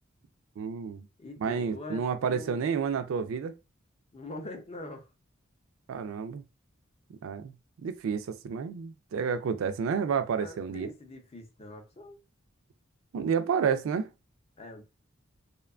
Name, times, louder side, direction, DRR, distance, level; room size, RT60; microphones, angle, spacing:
voice 1, 0.6-1.1 1.4-3.5 5.9-6.4 7.1-7.5 7.8-10.9 13.1-14.1, right 6 dB, 70° right, 0.3 m, -30 dB
voice 2, 1.2-2.7 4.1-5.1 10.4-12.2 14.6-14.8, left 2 dB, 30° left, 0.5 m, -43 dB
2.6 x 2.2 x 2.3 m
head